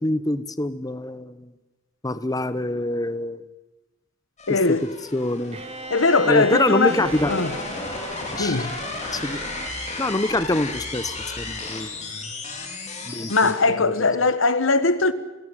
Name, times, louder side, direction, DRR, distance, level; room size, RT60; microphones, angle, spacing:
voice 1, 0.0-1.5 2.0-3.4 4.5-4.8 5.1-5.6 6.3-7.3 8.4-8.6 9.1-9.4 10.0-12.0 13.1-13.9, left 1 dB, 20° left, 0.9 m, -25 dB
sound 1, 4.4-13.5, left 3 dB, 35° left, 4.4 m, -34 dB
voice 2, 4.5-4.8 5.9-7.5 8.4-8.7 13.1-15.1, left 3 dB, 80° left, 1.4 m, -20 dB
Bowed string instrument, 5.5-10.2, right 3 dB, 30° right, 2.9 m, -36 dB
30.0 x 16.5 x 9.1 m
head